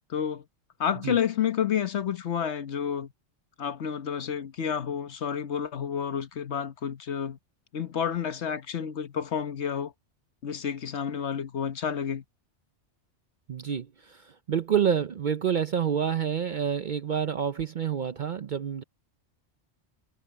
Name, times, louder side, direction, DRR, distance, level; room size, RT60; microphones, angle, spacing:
voice 1, 0.1-0.4 0.8-3.1 3.6-7.4 7.7-9.9 10.4-12.2, left 8 dB, 80° left, 1.3 m, -30 dB
voice 2, 13.5-18.8, right 8 dB, 50° right, 0.7 m, -28 dB
omnidirectional pair, 1.1 m